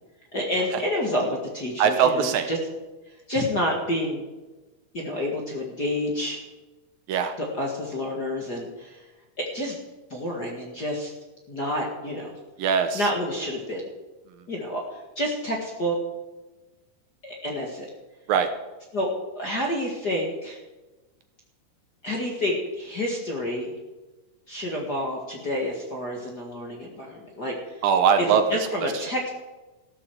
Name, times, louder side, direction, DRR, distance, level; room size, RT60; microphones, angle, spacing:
voice 1, 0.3-2.6 3.3-4.2 4.9-6.4 7.4-9.0 9.4-9.8 10.1-11.1 11.5-12.3 12.9-13.8 14.5-16.0 17.2-17.9 18.9-20.6 22.0-23.7 24.5-27.8 28.5-29.3, left 1 dB, 35° left, -1 dB, 1.8 m, -29 dB
voice 2, 1.8-2.5 7.1-7.4 12.6-13.1 18.3-18.5 27.8-28.7 28.9-29.1, right 7 dB, 75° right, 7 dB, 2.5 m, -21 dB
15.5 x 12.5 x 4.9 m, 1.1 s
omnidirectional pair, 4.5 m